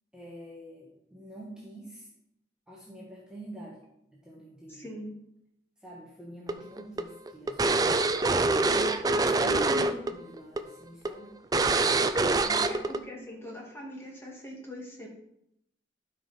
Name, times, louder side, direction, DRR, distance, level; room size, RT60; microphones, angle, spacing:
voice 1, 0.1-2.1 2.7-3.8 4.1-4.9 5.8-7.9 8.5-11.4 12.4-13.1, right 1 dB, 5° right, -6 dB, 1.5 m, -46 dB
voice 2, 4.7-5.1 9.3-10.0 12.7-15.1, left 1 dB, 15° left, -2 dB, 2.1 m, -40 dB
sound 1, 6.5-10.1 10.4-10.6 11.0-11.1 11.5-13.0, right 3 dB, 20° right, 0.4 m, -25 dB
12.0 x 5.4 x 4.3 m, 0.78 s
head